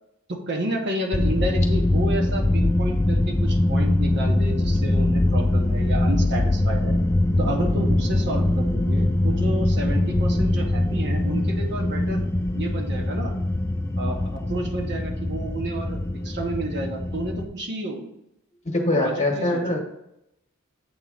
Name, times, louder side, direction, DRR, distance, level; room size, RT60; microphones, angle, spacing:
voice 1, 0.3-7.0 7.4-12.2 12.5-13.3 14.0-16.0 16.2-18.1 18.9-19.8, right 1 dB, 50° right, 2 dB, 0.9 m, -31 dB
sound 1, 1.1-17.5, left 1 dB, 10° left, 0.3 m, -22 dB
voice 2, 18.6-19.8, left 1 dB, 30° left, 2 dB, 1.2 m, -23 dB
8.0 x 3.0 x 5.0 m, 0.82 s
head